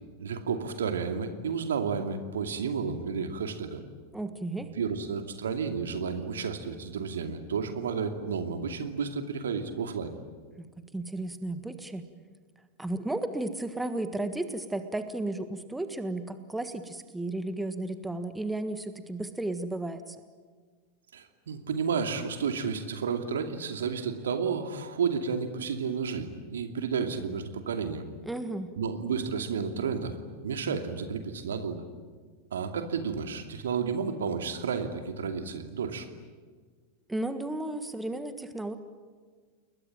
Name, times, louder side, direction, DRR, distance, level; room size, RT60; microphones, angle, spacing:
voice 1, 0.2-3.8 4.6-10.1 21.1-28.1 28.8-30.2 30.4-31.8 32.5-36.1, right 6 dB, 65° right, 6 dB, 2.5 m, -31 dB
voice 2, 4.1-4.7 10.6-12.0 12.8-20.2 28.2-28.7 37.1-38.8, right 2 dB, 5° right, 9 dB, 1.6 m, -34 dB
29.5 x 21.5 x 9.0 m, 1.6 s
figure-of-eight pair, 90°, 0 cm